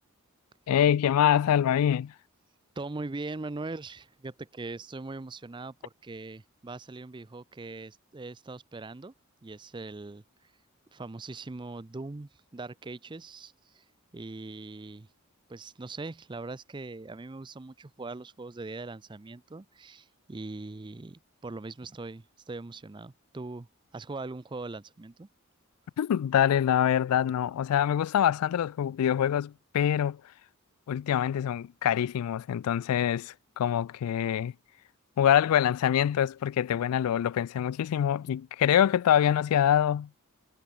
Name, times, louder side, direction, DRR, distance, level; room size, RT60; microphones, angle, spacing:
voice 1, 0.7-2.1 26.0-30.2 30.9-34.5 35.2-40.1, left 9 dB, 85° left, 0.3 m, -25 dB
voice 2, 2.8-9.1 9.4-10.2 10.9-13.8 14.1-15.1 15.5-23.7 23.9-25.3, right 3 dB, 20° right, 0.5 m, -41 dB
head